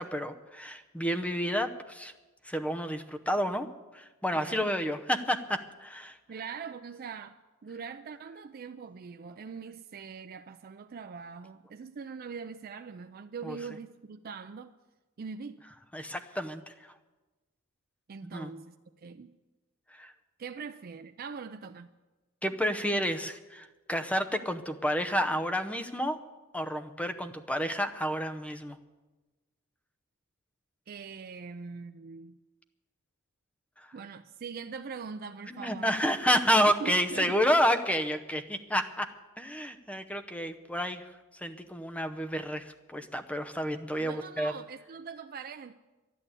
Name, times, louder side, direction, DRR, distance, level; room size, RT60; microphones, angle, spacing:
voice 1, 0.0-2.1 2.4-3.7 3.9-6.2 13.4-13.6 15.9-16.9 18.2-18.5 19.9-20.1 22.4-26.2 26.5-28.8 33.8-33.9 35.5-39.1 39.4-44.5, equal, 5° left, 0.7 m, -30 dB
voice 2, 4.3-5.0 6.3-14.7 15.2-15.7 18.1-19.3 20.4-21.9 30.9-32.4 33.9-35.9 36.8-37.4 44.0-45.7, right 5 dB, 45° right, 0.4 m, -42 dB
12.0 x 11.0 x 8.3 m
head